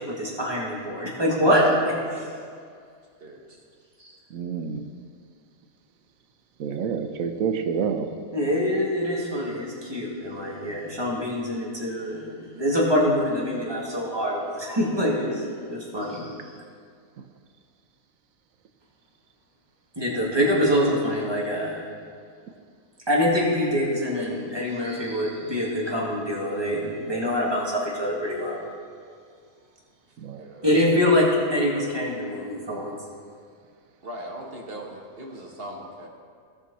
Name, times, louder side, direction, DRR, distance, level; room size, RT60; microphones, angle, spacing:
voice 1, 0.1-2.2 4.0-4.1 8.3-16.3 20.0-21.8 23.1-28.6 30.6-33.0, equal, 20° right, -5 dB, 2.1 m, -25 dB
voice 2, 3.2-3.6 30.4-30.7 34.0-36.1, right 1 dB, 45° right, -1 dB, 1.5 m, -39 dB
voice 3, 4.3-4.8 6.6-8.1 13.5-13.7 30.2-30.4, right 6 dB, 80° right, 6 dB, 1.2 m, -28 dB
17.5 x 6.1 x 4.1 m, 2.2 s
omnidirectional pair, 1.4 m